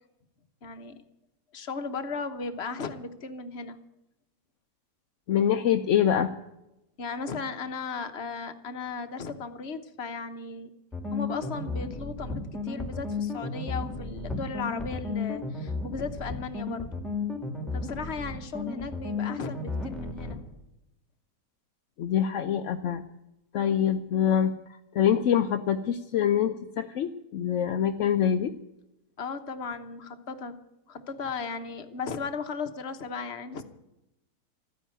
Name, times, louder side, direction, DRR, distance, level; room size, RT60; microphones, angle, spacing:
voice 1, 0.6-1.0 1.5-3.8 7.0-10.7 11.1-16.9 17.7-20.4 22.4-22.6 29.2-30.5 30.9-33.6, left 4 dB, 45° left, 8 dB, 1.2 m, -36 dB
voice 2, 5.3-6.3 22.0-23.0 23.5-24.5 24.9-28.5, left 9 dB, 60° left, 6 dB, 0.8 m, -25 dB
sound 1, 10.9-20.3, left 3 dB, ahead, 2.3 m, -33 dB
14.0 x 10.0 x 9.1 m, 0.89 s
omnidirectional pair, 1.8 m